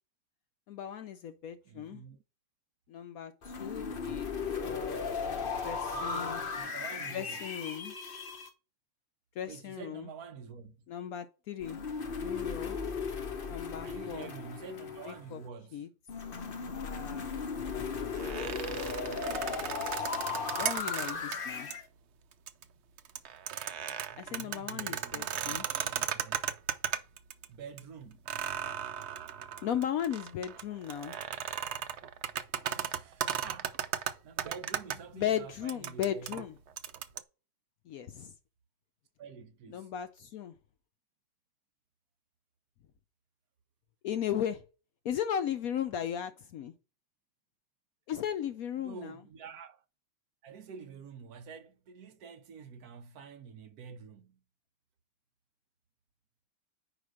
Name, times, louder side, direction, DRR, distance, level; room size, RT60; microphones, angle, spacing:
voice 1, 0.7-2.0 2.9-4.3 4.6-6.4 7.1-7.9 9.4-10.1 10.9-11.8 12.2-12.8 13.5-14.3 15.1-15.4 15.7-15.9 16.7-17.4 17.7-17.9 19.9-20.1 20.6-21.7 24.2-25.7 29.6-31.2 35.1-36.5 37.9-38.3 39.7-40.5 44.0-44.6 45.0-46.7 48.1-49.2, left 9 dB, 70° left, 0.9 m, -36 dB
voice 2, 1.6-2.2 5.9-7.4 9.4-10.8 13.8-15.9 24.1-26.4 27.5-28.2 32.7-33.9 34.2-36.4 39.2-39.9 48.8-49.8 50.4-54.4, right 6 dB, 65° right, 1.2 m, -48 dB
sound 1, 3.4-8.5 11.6-15.4 16.1-21.8, left 5 dB, 40° left, 0.9 m, -36 dB
sound 2, 18.1-21.4 21.7-21.8 22.3-22.6 23.0-27.5 27.8-27.9 28.3-35.0 35.7-37.2, right 9 dB, 90° right, 0.5 m, -36 dB
5.0 x 5.0 x 6.1 m
omnidirectional pair, 1.9 m